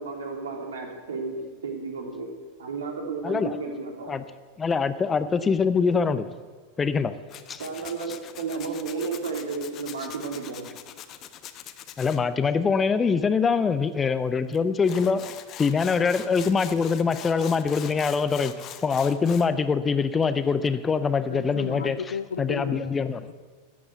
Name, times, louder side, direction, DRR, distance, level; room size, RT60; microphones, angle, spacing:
voice 1, 0.0-2.3 2.6-4.1 7.6-10.7, right 4 dB, 65° right, 2 dB, 2.7 m, -33 dB
voice 2, 3.2-3.6 4.1-4.2 4.6-6.3 6.8-7.1 7.5-7.6 12.0-15.3 15.6-22.0 22.4-23.2, left 5 dB, 20° left, 13 dB, 0.6 m, -24 dB
Tools, 7.3-12.2 14.5-14.6 14.8-19.5, left 11 dB, 35° left, 0.9 m, -42 dB
voice 3, 21.2-23.0, left 6 dB, 70° left, 14 dB, 0.6 m, -34 dB
13.5 x 8.6 x 8.1 m, 1.5 s
figure-of-eight pair, 90°, 0 cm